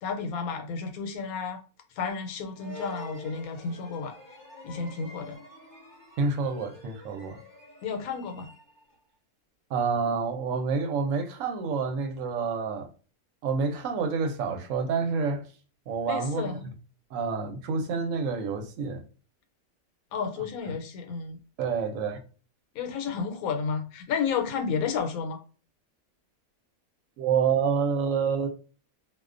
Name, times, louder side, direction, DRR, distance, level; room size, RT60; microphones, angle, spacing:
voice 1, 0.0-1.6 2.0-4.2 4.6-5.4 7.8-8.5 16.1-16.7 20.1-21.4 22.7-25.4, left 6 dB, 85° left, 1.1 m, -32 dB
sound 1, 2.5-9.0, equal, 25° left, 0.5 m, -48 dB
voice 2, 6.2-7.4 9.7-12.9 13.4-15.5 15.9-16.6 17.1-19.0 21.6-22.2 27.2-28.5, right 5 dB, 70° right, 0.9 m, -28 dB
2.3 x 2.2 x 2.4 m
omnidirectional pair, 1.5 m